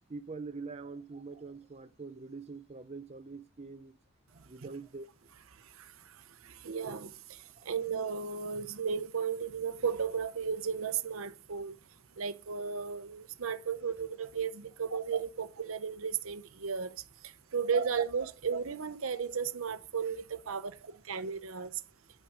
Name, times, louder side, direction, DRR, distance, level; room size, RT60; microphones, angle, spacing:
voice 1, 0.1-4.0 4.3-5.1 7.6-7.7 20.9-21.2, right 4 dB, 30° right, 0.4 m, -44 dB
voice 2, 6.6-7.4 7.7-11.8 12.2-17.0 17.5-20.7 21.1-21.7, right 6 dB, 85° right, 0.7 m, -34 dB
9.3 x 6.2 x 4.9 m
head